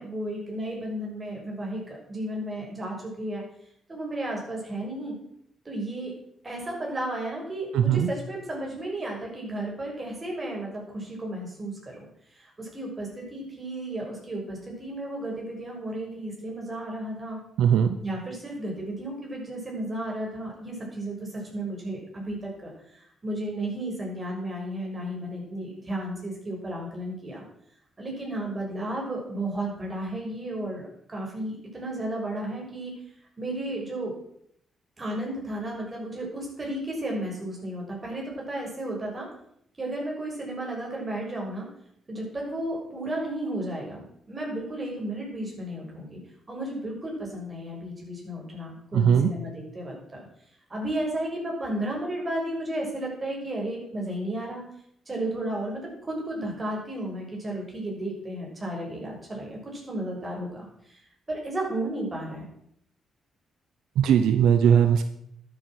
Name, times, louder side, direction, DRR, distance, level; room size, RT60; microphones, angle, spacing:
voice 1, 0.0-3.4 3.9-5.1 5.6-6.1 6.4-17.4 18.0-27.4 28.0-32.9 33.4-34.1 35.0-39.3 39.8-41.7 42.1-46.2 46.5-50.2 50.7-54.6 55.1-61.0 61.3-62.5, right 1 dB, 30° right, -1 dB, 6.5 m, -33 dB
voice 2, 7.7-8.1 17.6-18.0 48.9-49.3 64.0-65.0, right 8 dB, 85° right, 9 dB, 0.8 m, -19 dB
12.5 x 8.6 x 6.4 m, 0.72 s
cardioid pair, 80°, 0 cm